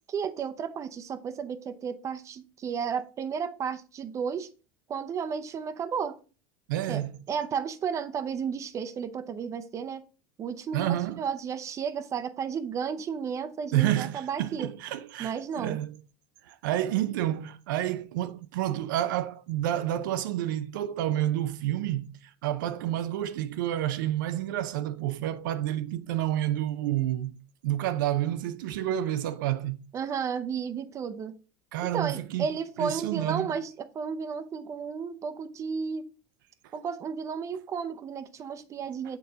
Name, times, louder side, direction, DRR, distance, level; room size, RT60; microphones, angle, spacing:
voice 1, 0.1-4.5 4.9-6.2 6.9-10.0 10.4-14.7 15.2-15.8 29.9-31.3 31.8-36.1 36.7-39.2, right 6 dB, 30° right, 0.6 m, -33 dB
voice 2, 6.7-7.2 10.7-11.2 13.7-15.9 16.4-27.4 27.6-29.8 31.7-32.5 32.8-33.5, right 13 dB, 85° right, 0.5 m, -29 dB
6.8 x 4.1 x 3.9 m
supercardioid pair, 130°, 10 cm